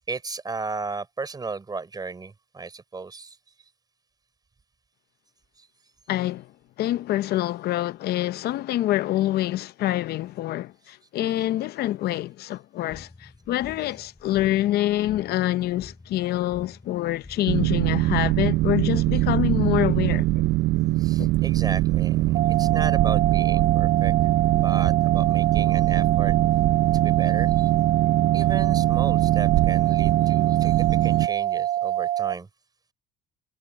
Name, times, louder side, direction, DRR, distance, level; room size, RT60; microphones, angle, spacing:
voice 1, 0.1-3.4 5.6-5.7 21.0-24.1 24.5-26.3 26.9-27.7 28.3-32.5, right 4 dB, 25° right, 5.0 m, -35 dB
voice 2, 6.1-6.5 6.8-20.4 21.2-21.3, left 14 dB, 70° left, 0.6 m, -26 dB
sound 1, 12.9-31.0, left 3 dB, 15° left, 7.5 m, -48 dB
Boat Water vehicle, 17.5-31.3, right 18 dB, 80° right, 0.6 m, -22 dB
sound 2, 22.3-32.3, right 13 dB, 60° right, 2.1 m, -26 dB
cardioid pair, 110°, 17 cm